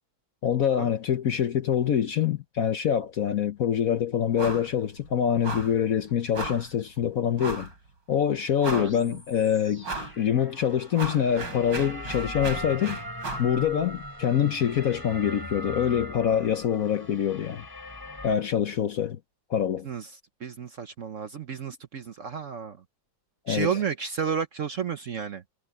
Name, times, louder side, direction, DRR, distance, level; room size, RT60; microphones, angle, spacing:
voice 1, 0.4-7.7 8.1-9.9 10.2-13.0 13.4-17.6 18.2-19.2 19.5-19.9 23.5-23.7, left 9 dB, 60° left, 1.0 m, -25 dB
sound 1, 4.4-4.7 5.0-5.1 5.4-5.8 6.3-6.7 7.4-7.7 8.2-8.3 8.6-9.1 9.8-10.2 10.6-13.5, right 3 dB, 70° right, 4.1 m, -35 dB
sound 2, 8.7-18.4, equal, 10° left, 3.3 m, -40 dB
voice 2, 8.7-9.2 19.8-20.1 20.4-22.8 23.5-25.4, right 6 dB, 55° right, 1.0 m, -32 dB
omnidirectional pair, 2.1 m